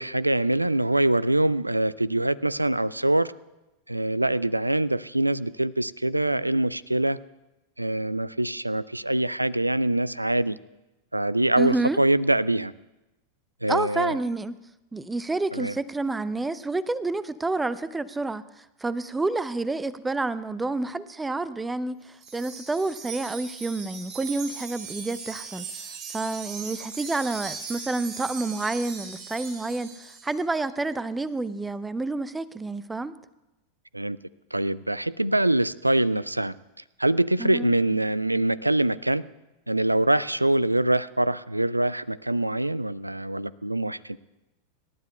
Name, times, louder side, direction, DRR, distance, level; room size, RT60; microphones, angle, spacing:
voice 1, 0.0-3.3 3.9-7.2 7.8-10.6 11.1-12.7 13.6-14.2 15.5-15.7 33.9-34.2 34.5-36.5 37.0-39.2 39.7-44.2, right 1 dB, 85° right, 20 dB, 0.3 m, -24 dB
voice 2, 11.6-12.0 13.7-14.6 14.9-25.7 26.1-33.1 37.4-37.7, right 3 dB, 10° right, 17 dB, 0.5 m, -29 dB
Wind chime, 22.2-30.4, right 6 dB, 50° right, 4.5 m, -39 dB
26.5 x 12.0 x 2.2 m, 0.99 s
figure-of-eight pair, 90°, 0 cm